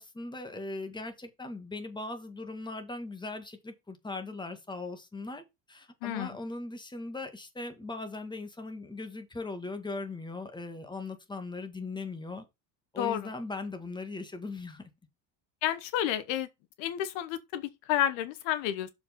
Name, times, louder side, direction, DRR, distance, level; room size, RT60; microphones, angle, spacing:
voice 1, 0.0-5.4 5.7-12.4 12.9-14.9, left 3 dB, 10° left, 1.9 m, -39 dB
voice 2, 15.6-16.5 16.8-18.9, left 11 dB, 65° left, 1.2 m, -30 dB
6.7 x 5.1 x 5.4 m
supercardioid pair, 110°, 47 cm